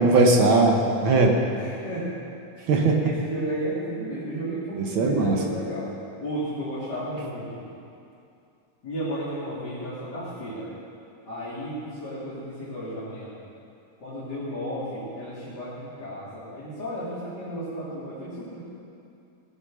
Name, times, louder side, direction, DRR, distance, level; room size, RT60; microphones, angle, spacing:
voice 1, 0.0-1.4 2.7-3.0 4.8-5.4, right 3 dB, 55° right, 1 dB, 1.5 m, -19 dB
voice 2, 1.5-2.2 2.8-5.9 6.2-7.7 8.8-10.7 11.3-13.4 14.0-18.6, right 1 dB, 35° left, -13 dB, 3.6 m, -33 dB
18.0 x 8.0 x 6.5 m, 2.6 s
omnidirectional pair, 3.5 m